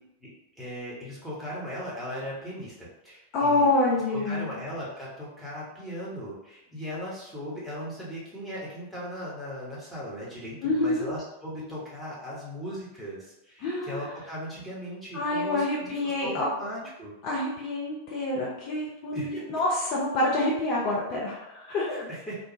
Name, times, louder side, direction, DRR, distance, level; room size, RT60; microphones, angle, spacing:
voice 1, 0.6-3.7 4.1-17.1 19.1-19.4 21.9-22.4, equal, ahead, -7 dB, 1.1 m, -38 dB
voice 2, 3.3-4.6 10.6-11.1 13.6-14.0 15.1-16.4 17.2-22.0, left 2 dB, 40° left, -4 dB, 0.6 m, -27 dB
2.5 x 2.2 x 2.9 m, 0.86 s
figure-of-eight pair, 90°, 0 cm